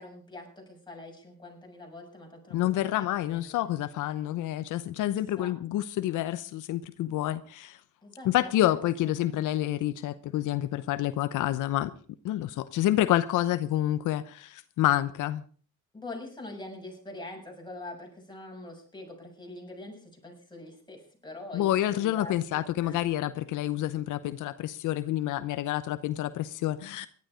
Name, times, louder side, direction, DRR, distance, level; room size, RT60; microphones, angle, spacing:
voice 1, 0.0-3.0 3.3-3.6 5.1-5.5 8.0-8.8 9.2-9.4 15.9-23.0, left 2 dB, 15° left, 7.0 m, -44 dB
voice 2, 2.5-7.8 8.2-11.9 12.2-15.4 21.5-27.1, left 14 dB, 85° left, 0.9 m, -28 dB
17.5 x 12.0 x 5.0 m
cardioid pair, 90°, 30 cm